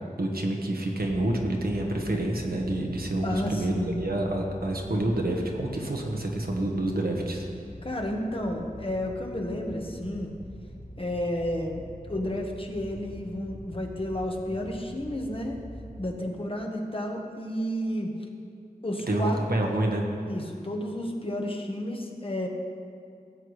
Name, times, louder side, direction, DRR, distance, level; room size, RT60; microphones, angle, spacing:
voice 1, 0.2-7.5 19.1-20.0, right 1 dB, 75° right, 1 dB, 1.2 m, -28 dB
sound 1, 0.9-16.1, equal, 60° left, 2.5 m, -44 dB
voice 2, 3.2-4.0 7.8-10.3 11.0-11.8 12.1-15.6 16.0-18.1 18.8-19.4 20.3-22.5, left 1 dB, 35° left, 1 dB, 1.2 m, -31 dB
16.0 x 7.9 x 3.2 m, 2.4 s
wide cardioid pair, 60°, 16 cm